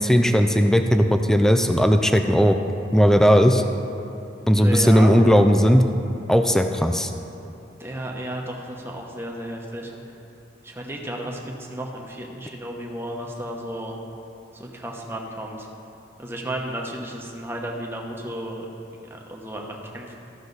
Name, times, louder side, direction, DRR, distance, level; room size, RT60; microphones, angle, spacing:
voice 1, 0.0-2.6 2.9-3.6 4.5-5.8 6.3-7.1, equal, 5° left, 6 dB, 0.4 m, -17 dB
voice 2, 4.5-5.1 7.8-9.9 10.6-11.4 11.7-14.0 14.5-15.7 16.2-18.7 19.1-20.1, right 1 dB, 15° right, 0 dB, 1.0 m, -33 dB
14.5 x 6.3 x 4.0 m, 2.8 s
head